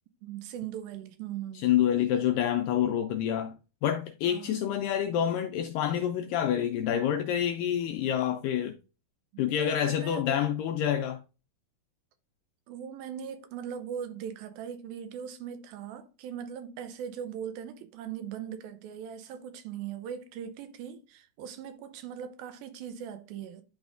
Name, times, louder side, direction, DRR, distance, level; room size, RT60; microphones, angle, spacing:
voice 1, 0.2-1.7 4.3-4.6 9.3-10.4 12.7-23.6, right 8 dB, 80° right, 2.4 m, -40 dB
voice 2, 1.6-3.6 3.8-8.8 9.4-11.2, left 10 dB, 85° left, 2.0 m, -27 dB
11.0 x 4.1 x 2.5 m
omnidirectional pair, 4.4 m